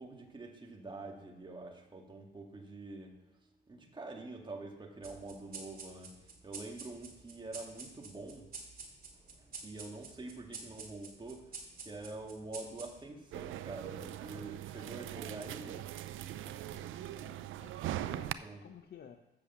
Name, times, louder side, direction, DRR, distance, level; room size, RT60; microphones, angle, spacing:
voice 1, 0.0-3.2 3.7-8.5 9.5-11.6 11.8-15.8 17.8-18.6, right 2 dB, 25° right, 1 dB, 2.1 m, -46 dB
sound 1, 5.0-13.9, right 4 dB, 45° right, 2.3 m, -50 dB
sound 2, 13.3-18.3, right 13 dB, 80° right, 0.5 m, -41 dB
voice 2, 16.4-19.2, left 8 dB, 55° left, 5 dB, 0.8 m, -56 dB
8.0 x 6.6 x 7.1 m, 1.0 s
cardioid pair, 90°, 20 cm